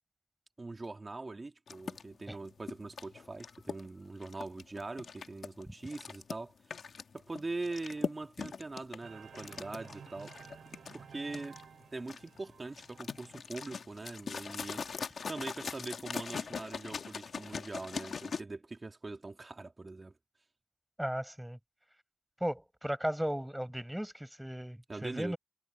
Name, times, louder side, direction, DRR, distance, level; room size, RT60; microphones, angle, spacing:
voice 1, 0.6-6.5 7.1-10.3 10.9-11.6 11.9-20.1 24.9-25.3, right 3 dB, 40° right, 2.4 m, -42 dB
sound 1, 1.7-18.4, left 5 dB, 75° left, 2.0 m, -42 dB
sound 2, 9.0-13.6, right 7 dB, 90° right, 7.2 m, -53 dB
voice 2, 21.0-21.6 22.4-25.4, equal, 5° right, 6.7 m, -36 dB
cardioid pair, 45°, 0 cm